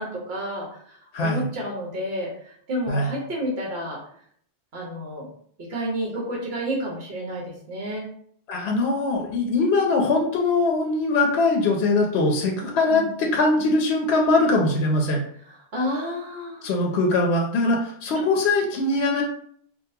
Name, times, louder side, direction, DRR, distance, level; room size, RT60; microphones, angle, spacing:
voice 1, 0.0-4.0 4.7-5.3 5.7-8.1 12.9-13.1 15.7-16.7, equal, 65° right, -2 dB, 1.3 m, -30 dB
voice 2, 1.1-1.5 2.9-3.1 8.5-15.2 16.6-19.2, left 2 dB, 75° left, 1 dB, 0.8 m, -21 dB
3.7 x 2.4 x 2.7 m, 0.62 s
omnidirectional pair, 1.1 m